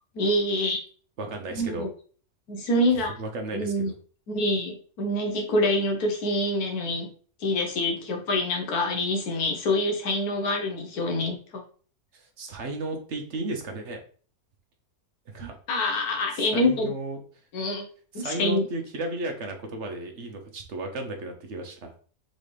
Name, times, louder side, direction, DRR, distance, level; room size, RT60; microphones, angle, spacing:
voice 1, 0.1-0.8 1.5-1.9 2.5-3.1 3.5-3.9 4.3-7.1 7.4-11.6 15.7-16.9 17.5-17.9 18.1-18.6, left 1 dB, 90° left, 2 dB, 1.5 m, -26 dB
voice 2, 1.2-1.9 3.2-4.0 12.1-14.0 15.3-15.6 16.3-17.2 18.1-21.9, right 2 dB, 55° right, 4 dB, 1.1 m, -34 dB
4.0 x 3.9 x 3.3 m, 0.43 s
omnidirectional pair, 1.5 m